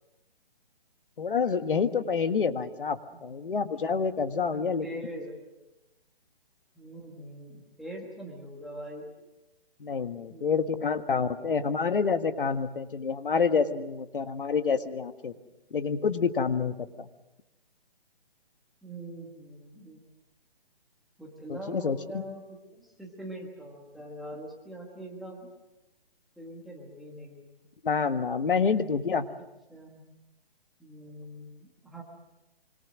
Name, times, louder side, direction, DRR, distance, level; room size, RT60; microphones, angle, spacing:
voice 1, 1.2-5.1 9.8-15.3 15.7-17.1 21.5-22.2 27.8-29.3, left 5 dB, 65° left, 9 dB, 1.7 m, -28 dB
voice 2, 4.5-5.4 6.7-9.1 10.3-10.9 11.4-11.7 18.8-20.0 21.2-25.5 26.4-27.6 29.7-30.0 30.8-32.0, right 1 dB, ahead, -2 dB, 1.3 m, -43 dB
25.5 x 25.0 x 6.3 m, 0.96 s
hypercardioid pair, 175°, 29 cm